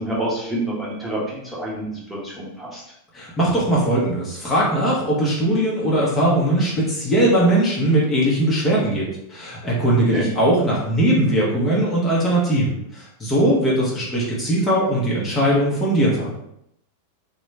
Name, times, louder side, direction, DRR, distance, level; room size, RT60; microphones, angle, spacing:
voice 1, 0.0-2.8 10.1-10.2, right 1 dB, 5° right, -7 dB, 1.1 m, -27 dB
voice 2, 3.1-16.3, right 1 dB, 15° left, -5 dB, 0.9 m, -20 dB
3.0 x 2.3 x 3.2 m, 0.77 s
figure-of-eight pair, 90°, 0 cm